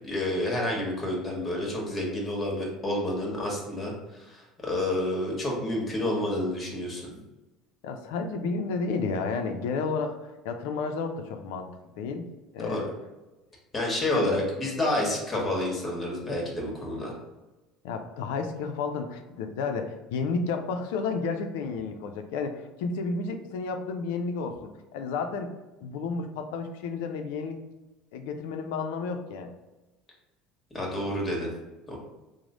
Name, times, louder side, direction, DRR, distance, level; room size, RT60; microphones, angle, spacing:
voice 1, 0.0-7.1 12.6-12.8 13.7-17.1 30.7-31.5 31.9-32.0, left 1 dB, 25° left, -2 dB, 1.3 m, -29 dB
voice 2, 7.8-12.3 12.5-12.9 14.1-14.3 17.8-25.5 25.8-27.6 28.1-29.5, left 4 dB, 80° left, 6 dB, 0.4 m, -31 dB
3.1 x 2.0 x 3.7 m, 1.1 s
hypercardioid pair, 80°, 0 cm